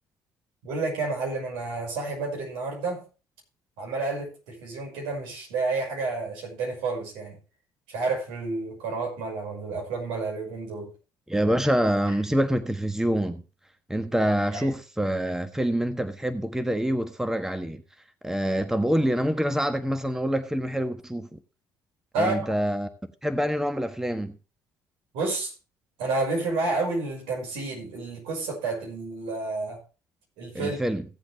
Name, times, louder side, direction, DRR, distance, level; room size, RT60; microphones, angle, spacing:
voice 1, 0.6-3.1 3.8-7.4 7.9-10.9 14.5-14.6 22.1-22.5 25.1-25.5 26.0-29.8 30.4-30.8, right 3 dB, 80° right, 5.8 m, -30 dB
voice 2, 11.3-13.4 13.9-17.8 18.2-21.4 22.2-22.9 23.2-24.4 30.5-31.0, equal, 5° right, 1.3 m, -26 dB
16.5 x 7.9 x 3.4 m
hypercardioid pair, 60°, 9 cm